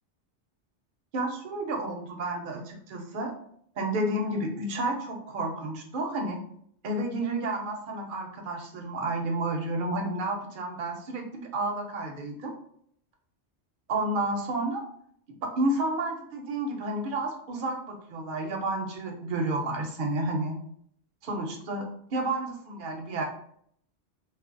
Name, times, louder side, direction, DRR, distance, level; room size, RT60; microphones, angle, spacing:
voice 1, 1.1-3.3 3.8-6.4 6.8-12.5 13.9-14.8 15.4-20.6 21.2-23.3, right 2 dB, 55° right, 2 dB, 0.6 m, -31 dB
3.2 x 2.0 x 2.4 m, 0.66 s
omnidirectional pair, 1.2 m